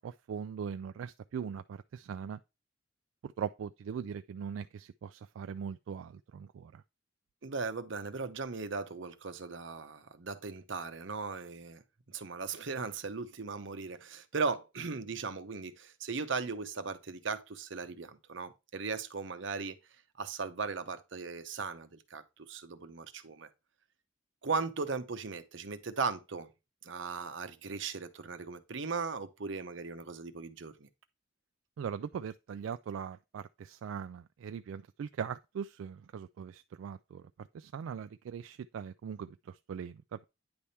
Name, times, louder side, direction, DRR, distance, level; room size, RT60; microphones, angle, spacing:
voice 1, 0.0-2.4 3.2-6.8 31.8-40.2, right 7 dB, 85° right, 0.3 m, -40 dB
voice 2, 7.4-19.8 20.2-23.5 24.4-26.5 26.8-30.9, right 4 dB, 70° right, 0.8 m, -38 dB
9.6 x 3.5 x 4.2 m
head